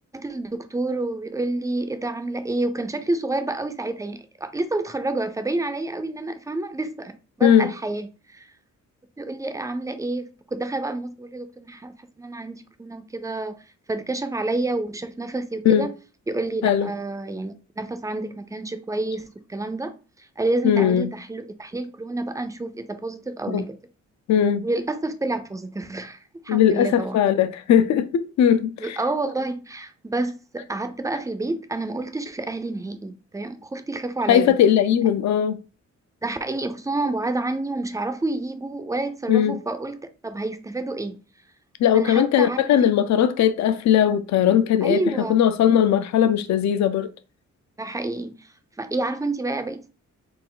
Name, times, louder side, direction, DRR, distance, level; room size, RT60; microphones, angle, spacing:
voice 1, 0.1-8.5 9.2-13.6 13.9-15.9 16.3-23.8 24.6-27.2 28.8-34.6 36.2-41.2 41.9-42.6 44.8-45.4 47.8-48.5 48.8-49.9, right 2 dB, 10° right, 0.3 m, -29 dB
voice 2, 7.4-7.7 15.7-15.9 16.6-16.9 20.6-21.1 23.5-23.6 24.3-24.6 26.5-29.0 34.3-35.6 39.3-39.6 41.8-45.0 45.3-47.1, left 9 dB, 65° left, 0.5 m, -19 dB
4.3 x 2.4 x 3.8 m
wide cardioid pair, 155°, 30 cm